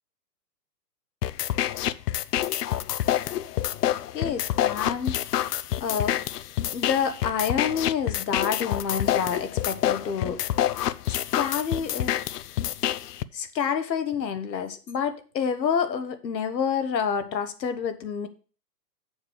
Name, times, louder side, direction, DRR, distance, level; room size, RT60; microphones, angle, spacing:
sound 1, 1.2-13.2, left 12 dB, 70° left, 0.6 m, -27 dB
voice 1, 4.1-5.4 5.8-6.2 6.7-10.4 11.1-12.1 13.3-18.3, left 7 dB, 85° left, 10 dB, 1.5 m, -28 dB
7.1 x 6.6 x 5.1 m, 0.37 s
hypercardioid pair, 155°, 49 cm